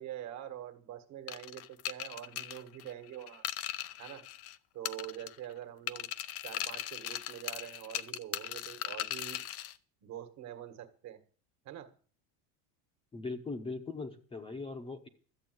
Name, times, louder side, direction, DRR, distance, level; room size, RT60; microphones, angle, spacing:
voice 1, 0.0-3.4 4.0-4.3 4.7-6.1 6.4-9.4 10.0-11.2 11.6-11.9, right 11 dB, 40° right, 9 dB, 1.7 m, -45 dB
sound 1, 1.3-4.6 4.8-5.5 5.9-9.7, left 13 dB, 35° left, 0.6 m, -39 dB
voice 2, 13.1-15.1, left 3 dB, 15° left, 5 dB, 0.9 m, -40 dB
13.0 x 8.3 x 7.9 m, 0.42 s
cardioid pair, 160°, 40 cm